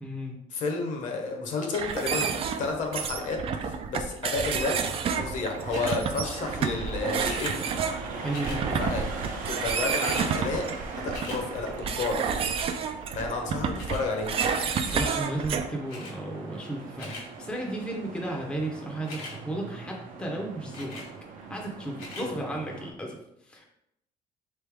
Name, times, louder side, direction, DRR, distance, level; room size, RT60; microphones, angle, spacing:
voice 1, 0.0-0.3 8.1-8.9 14.9-20.9 21.5-23.2 23.4-23.7, right 1 dB, 5° left, 0 dB, 0.6 m, -34 dB
voice 2, 0.5-4.8 5.2-7.6 8.8-9.0 9.5-10.6 11.0-12.3 13.1-14.3 22.2-22.4, left 3 dB, 55° left, 3 dB, 0.9 m, -31 dB
sound 1, 1.7-15.7, right 6 dB, 40° right, 0.4 m, -30 dB
sound 2, 4.8-22.9, right 4 dB, 65° right, 0.8 m, -41 dB
sound 3, 5.7-6.0 7.2-7.6 8.3-8.6 9.5-9.6 9.8-10.3 10.7-11.4 12.4-12.7 13.8-14.1 14.7-15.0 15.9-16.1 16.7-17.3 19.0-19.3 20.7-21.1 21.9-22.3 22.9-23.0, left 3 dB, 85° left, 1.3 m, -41 dB
3.9 x 3.3 x 3.4 m, 0.80 s
cardioid pair, 145°, 15 cm